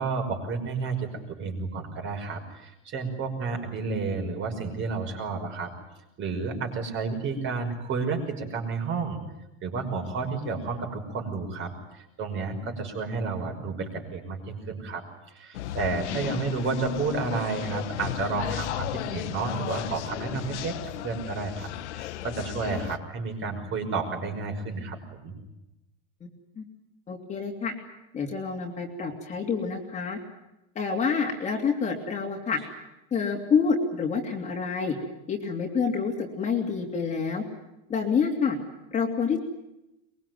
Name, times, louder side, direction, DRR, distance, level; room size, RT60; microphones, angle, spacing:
voice 1, 0.0-5.7 6.2-9.2 9.6-15.0 15.3-21.7 21.9-25.4, right 4 dB, 35° right, 3 dB, 5.7 m, -31 dB
sound 1, 15.5-23.0, left 12 dB, 90° left, 1.4 m, -34 dB
voice 2, 16.1-16.4 26.2-26.3 26.6-26.7 27.1-27.7 28.1-30.2 30.7-32.6 33.1-35.0 35.3-37.4 37.9-38.6 38.9-39.4, left 5 dB, 20° left, 2 dB, 3.0 m, -27 dB
23.5 x 22.5 x 9.4 m, 0.92 s
supercardioid pair, 145°, 34 cm